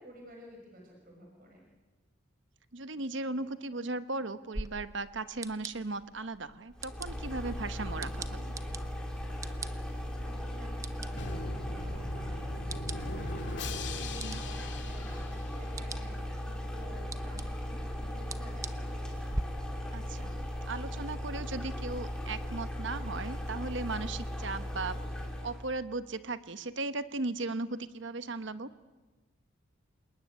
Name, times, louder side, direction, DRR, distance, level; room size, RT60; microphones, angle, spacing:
voice 1, 0.0-1.6 10.2-19.1, equal, 45° right, 0 dB, 5.7 m, -52 dB
voice 2, 2.7-8.5 14.2-14.4 19.9-25.0 25.4-28.7, right 3 dB, 65° right, 12 dB, 1.1 m, -37 dB
sound 1, 4.5-19.4, right 2 dB, 15° right, 0.7 m, -46 dB
sound 2, 6.8-25.7, equal, 5° left, 3.4 m, -37 dB
Drum, 11.2-16.0, left 2 dB, 60° left, 2.6 m, -41 dB
28.0 x 19.5 x 9.3 m, 1.2 s
head